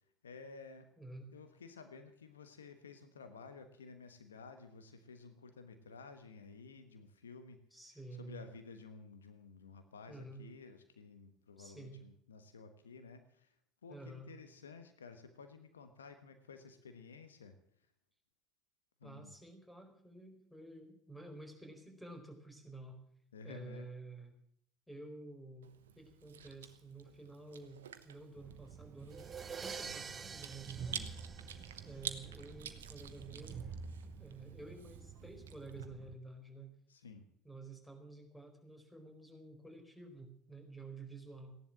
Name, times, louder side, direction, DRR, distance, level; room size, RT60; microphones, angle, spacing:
voice 1, 0.2-0.9 1.3-7.6 7.8-13.5 13.8-17.6 19.0-19.4 23.3-23.9 30.8-31.1 36.9-37.3, left 4 dB, 90° left, 9 dB, 1.2 m, -53 dB
voice 2, 1.0-1.3 7.7-8.4 10.1-10.5 11.6-12.0 13.9-14.3 19.0-23.0 23.4-24.4 24.9-29.3 29.6-31.0 31.8-33.6 34.2-36.8 37.4-41.6, right 2 dB, 5° left, 5 dB, 4.7 m, -51 dB
Chewing mastication, 25.6-35.9, right 9 dB, 85° right, 1.0 m, -50 dB
Train, 28.4-36.2, right 6 dB, 50° right, 1.2 m, -50 dB
sound 1, 29.1-32.1, right 6 dB, 30° right, 1.0 m, -47 dB
16.0 x 11.0 x 7.4 m, 0.65 s
hypercardioid pair, 70°, 0 cm